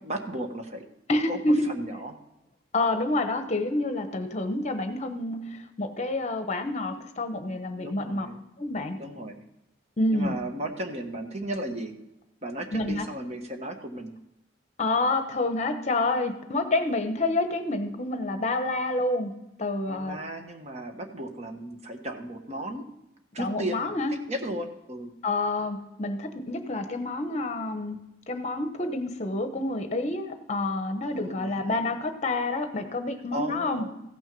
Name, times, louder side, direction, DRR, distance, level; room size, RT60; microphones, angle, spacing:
voice 1, 0.0-0.9 1.3-1.4 1.7-2.1 7.5-8.4 9.0-9.4 10.1-11.9 12.4-14.1 19.9-22.8 23.3-23.9 24.3-25.1 31.0-31.9 33.3-34.0, right 1 dB, 35° right, 5 dB, 1.2 m, -35 dB
voice 2, 1.1-1.7 2.7-8.3 8.6-9.0 10.0-10.4 12.7-13.1 14.8-19.3 19.6-20.2 23.4-24.1 25.2-28.0 28.3-33.8, left 2 dB, 35° left, 8 dB, 1.0 m, -28 dB
15.0 x 6.2 x 5.3 m, 0.89 s
head